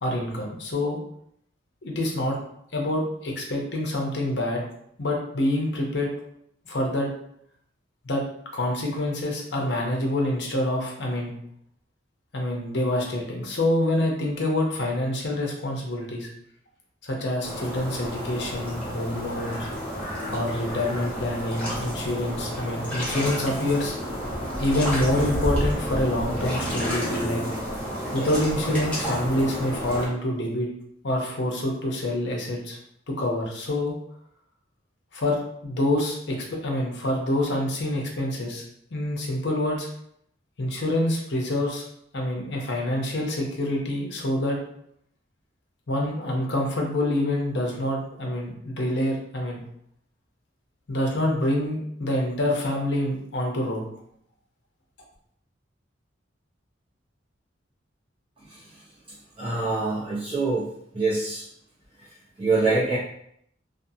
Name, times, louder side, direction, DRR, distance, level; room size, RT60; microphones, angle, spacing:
voice 1, 0.0-1.0 1.8-2.4 2.7-4.6 5.0-6.1 6.7-7.1 8.0-8.2 8.5-11.3 12.3-16.3 17.0-19.7 20.3-23.9 24.6-27.4 28.1-30.7 31.0-32.8 33.1-33.9 35.1-38.6 38.9-39.9 40.6-41.8 42.1-44.6 45.9-49.6 50.9-53.8, left 1 dB, 65° left, 0 dB, 0.7 m, -26 dB
sound 1, 17.4-30.1, equal, 5° left, 0.8 m, -30 dB
voice 2, 59.4-60.7 60.9-61.5 62.4-63.0, right 3 dB, 30° right, -9 dB, 0.8 m, -24 dB
2.6 x 2.3 x 2.7 m, 0.72 s
head